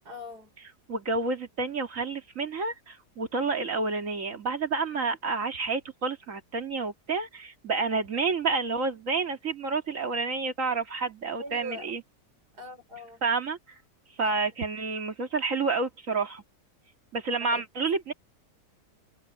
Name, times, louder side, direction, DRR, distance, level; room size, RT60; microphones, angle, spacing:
voice 1, 0.0-0.5 11.4-11.9 12.5-13.2 14.2-14.5 17.4-17.7, equal, 65° right, 5.7 m, -42 dB
voice 2, 0.9-12.0 13.2-13.6 14.2-16.4 17.1-18.1, right 4 dB, 50° right, 2.5 m, -29 dB
omnidirectional pair, 1.8 m